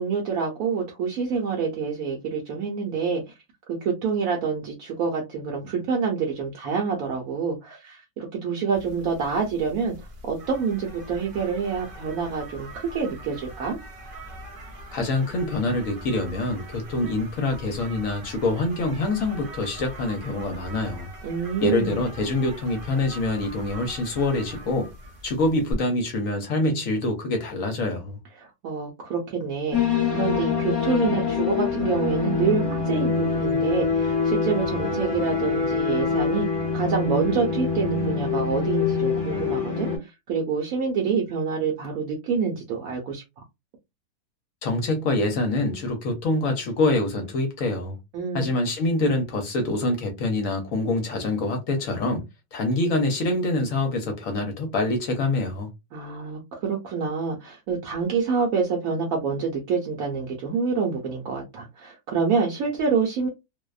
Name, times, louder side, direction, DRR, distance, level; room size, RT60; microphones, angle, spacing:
voice 1, 0.0-3.2 3.7-9.9 10.2-13.8 21.2-22.0 28.4-36.5 36.7-43.2 48.1-48.5 55.9-63.3, right 5 dB, 70° right, 1.0 m, -27 dB
sound 1, 8.7-25.7, right 1 dB, 50° right, 0.6 m, -42 dB
voice 2, 14.9-21.1 21.6-24.9 25.2-28.2 44.6-48.0 48.3-52.2 52.5-55.7, left 2 dB, 65° left, 1.0 m, -25 dB
sound 2, 29.7-40.0, left 5 dB, 25° left, 0.5 m, -25 dB
2.6 x 2.1 x 2.3 m
omnidirectional pair, 1.7 m